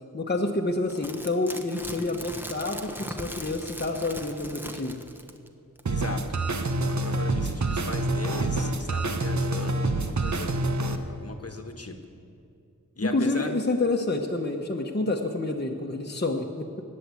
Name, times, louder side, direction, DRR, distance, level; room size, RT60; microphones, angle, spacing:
voice 1, 0.1-5.0 13.0-16.7, left 2 dB, 30° left, 0 dB, 1.1 m, -28 dB
sound 1, 0.9-5.5 5.8-5.9, equal, 5° right, 1.1 m, -39 dB
voice 2, 5.9-6.4 6.8-10.5 11.1-12.0 13.0-13.5, left 2 dB, 45° left, 6 dB, 1.4 m, -38 dB
sound 2, 5.9-11.0, right 2 dB, 60° right, 1.0 m, -27 dB
19.5 x 7.7 x 8.3 m, 2.5 s
wide cardioid pair, 50°, 33 cm